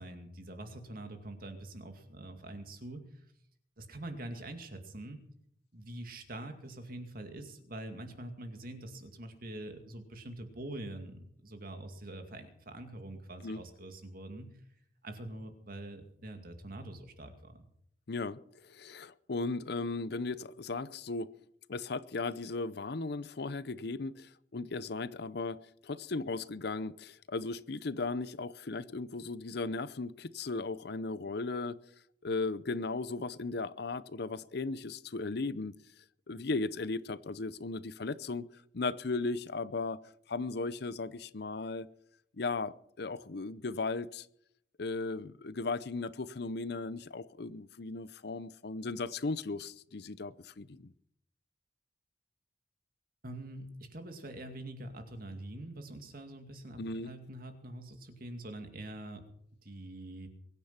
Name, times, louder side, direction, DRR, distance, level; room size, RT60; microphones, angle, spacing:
voice 1, 0.0-3.0 3.8-5.2 5.7-14.5 15.0-17.6 53.2-59.3 59.6-60.3, right 1 dB, 50° right, 6 dB, 2.3 m, -44 dB
voice 2, 18.1-21.3 21.7-31.8 32.2-35.7 36.3-38.5 38.7-40.0 40.3-41.9 42.4-44.3 44.8-50.9 56.8-57.1, left 3 dB, 60° left, 16 dB, 0.7 m, -36 dB
22.5 x 10.0 x 5.9 m, 0.70 s
head